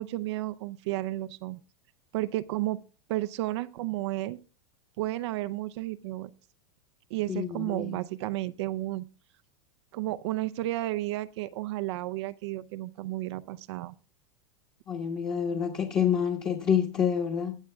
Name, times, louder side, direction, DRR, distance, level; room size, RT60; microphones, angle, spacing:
voice 1, 0.0-1.6 2.1-2.8 3.1-4.4 5.0-6.3 7.1-9.0 9.9-13.9, right 16 dB, 65° right, 11 dB, 0.6 m, -32 dB
voice 2, 7.3-8.0 14.9-17.6, left 8 dB, 30° left, 0 dB, 1.5 m, -28 dB
21.0 x 7.3 x 2.3 m, 0.35 s
supercardioid pair, 130°, 16 cm